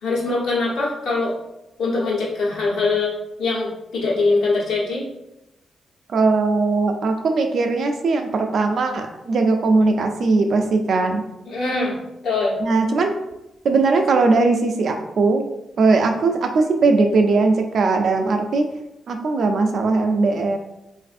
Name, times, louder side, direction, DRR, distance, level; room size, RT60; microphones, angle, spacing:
voice 1, 0.0-1.3 1.8-5.1 11.5-12.0 12.2-12.6, left 3 dB, 85° left, -5 dB, 1.0 m, -22 dB
voice 2, 6.1-11.2 12.6-13.1 13.6-15.4 15.8-18.6 19.1-20.6, right 3 dB, 60° right, 5 dB, 0.4 m, -19 dB
3.3 x 2.5 x 2.5 m, 0.91 s
cardioid pair, 105°, 0 cm